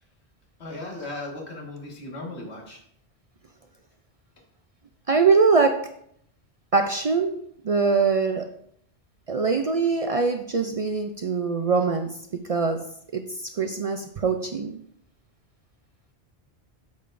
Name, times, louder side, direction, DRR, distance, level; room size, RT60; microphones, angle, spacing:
voice 1, 0.6-2.8, left 2 dB, 90° left, -1 dB, 1.9 m, -36 dB
voice 2, 5.1-5.9 6.7-7.4 7.6-8.5 9.3-12.1 12.5-12.8 13.1-13.2 13.6-14.7, right 4 dB, 50° right, 5 dB, 0.4 m, -22 dB
8.2 x 6.7 x 2.6 m, 0.68 s
omnidirectional pair, 1.1 m